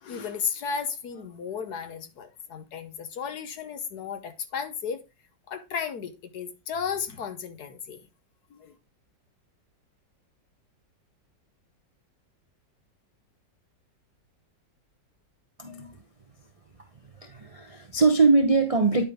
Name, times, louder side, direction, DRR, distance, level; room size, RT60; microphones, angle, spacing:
voice 1, 0.0-5.0 5.5-8.0 8.5-8.7, left 6 dB, 65° left, 1.4 m, -34 dB
voice 2, 15.6-15.9 17.2-19.0, right 3 dB, 40° right, 0.5 m, -22 dB
10.0 x 5.2 x 3.6 m
omnidirectional pair, 2.0 m